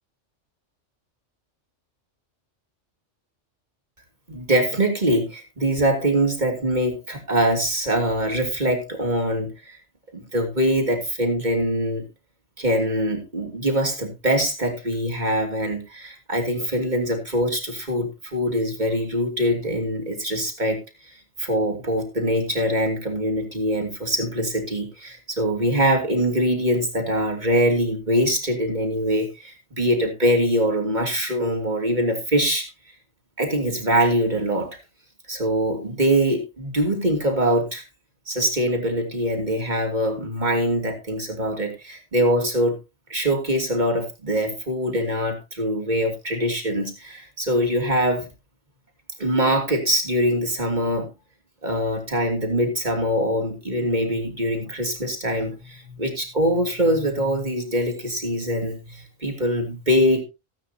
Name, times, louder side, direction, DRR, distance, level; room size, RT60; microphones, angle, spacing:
voice 1, 4.3-9.8 10.1-12.1 12.6-21.1 21.4-32.7 33.4-34.7 35.3-37.8 38.3-42.8 43.1-48.3 49.2-51.1 51.6-60.2, equal, 35° right, 2 dB, 3.0 m, -23 dB
18.0 x 9.0 x 2.9 m, 0.26 s
omnidirectional pair, 1.3 m